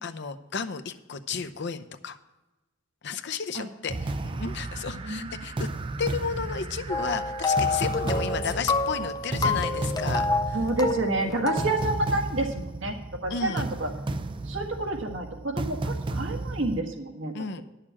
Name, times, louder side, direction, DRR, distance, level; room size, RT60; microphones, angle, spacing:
voice 1, 0.0-2.2 3.0-5.7 6.0-10.6 13.3-13.7 17.3-17.6, left 5 dB, 60° left, 10 dB, 0.7 m, -33 dB
sound 1, 3.9-16.8, right 2 dB, 25° right, 0.4 m, -33 dB
sound 2, 6.9-12.1, left 3 dB, 20° left, 0.6 m, -28 dB
voice 2, 10.5-13.0 13.2-13.9 14.5-17.3, right 2 dB, 75° right, 3 dB, 1.7 m, -29 dB
10.0 x 6.7 x 7.3 m, 1.1 s
head